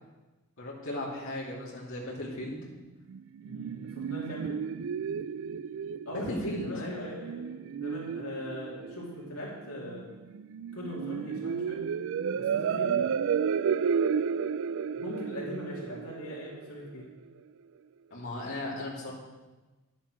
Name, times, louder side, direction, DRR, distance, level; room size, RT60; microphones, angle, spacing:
voice 1, 0.6-2.6 6.1-6.7 18.1-19.1, left 1 dB, 65° left, -6 dB, 2.8 m, -36 dB
sound 1, 3.1-17.1, right 7 dB, 60° right, 0.3 m, -32 dB
voice 2, 3.4-4.6 6.0-10.1 10.7-11.8 12.3-13.1 15.0-17.0, left 1 dB, 85° left, -5 dB, 2.8 m, -40 dB
10.5 x 7.2 x 6.3 m, 1.2 s
head